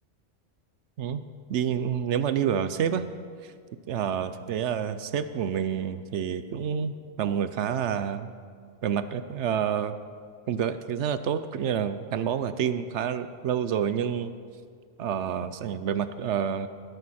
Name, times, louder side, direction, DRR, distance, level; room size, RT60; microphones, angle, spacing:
voice 1, 1.5-3.0 3.4-3.5 3.9-8.3 8.8-9.9 10.5-14.3 15.0-16.7, right 8 dB, 70° right, 12 dB, 0.9 m, -28 dB
20.0 x 11.0 x 4.3 m, 2.1 s
omnidirectional pair, 1.3 m